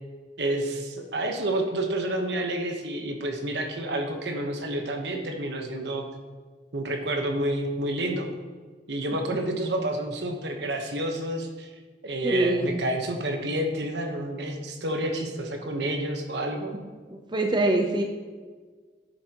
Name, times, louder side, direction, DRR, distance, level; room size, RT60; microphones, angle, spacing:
voice 1, 0.4-6.0 6.7-8.3 8.9-11.7 12.0-16.8, right 1 dB, 75° right, 4 dB, 1.1 m, -29 dB
voice 2, 12.2-12.8 17.3-18.0, right 1 dB, 25° right, 3 dB, 0.6 m, -24 dB
10.0 x 8.0 x 3.0 m, 1.5 s
head